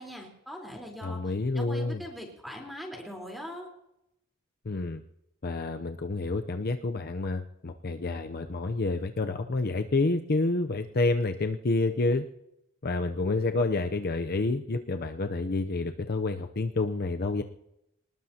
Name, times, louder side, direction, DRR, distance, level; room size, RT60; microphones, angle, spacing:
voice 1, 0.0-1.2 1.5-3.7, equal, ahead, 0 dB, 3.9 m, -41 dB
voice 2, 1.0-2.0 4.6-5.0 5.4-12.3 12.8-17.4, left 3 dB, 45° left, 7 dB, 0.6 m, -29 dB
24.0 x 19.5 x 2.9 m, 0.83 s
head